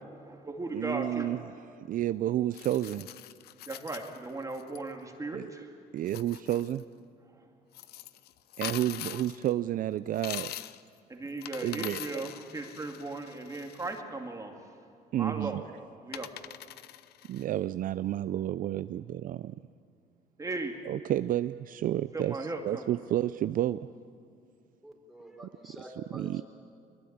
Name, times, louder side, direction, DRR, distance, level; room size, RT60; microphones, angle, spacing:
voice 1, 0.0-1.4 3.7-5.8 7.2-7.5 11.1-14.5 15.2-15.7 16.0-16.3 20.4-20.8 22.1-22.9, right 2 dB, 20° right, 3 dB, 2.3 m, -37 dB
voice 2, 0.7-1.4 1.9-3.1 5.3-5.5 5.9-6.8 8.6-10.5 11.6-12.0 15.1-15.6 17.3-19.6 20.9-22.4 22.6-23.9 26.1-26.4, right 12 dB, 55° right, 13 dB, 0.5 m, -30 dB
sound 1, 2.5-4.8 6.0-6.8 7.7-9.5 10.1-10.9 11.3-14.0 15.5-15.6 16.1-17.4, left 13 dB, 70° left, 0.8 m, -43 dB
voice 3, 24.8-26.4, equal, ahead, 1 dB, 4.2 m, -48 dB
22.0 x 22.0 x 8.7 m, 2.4 s
cardioid pair, 110°, 17 cm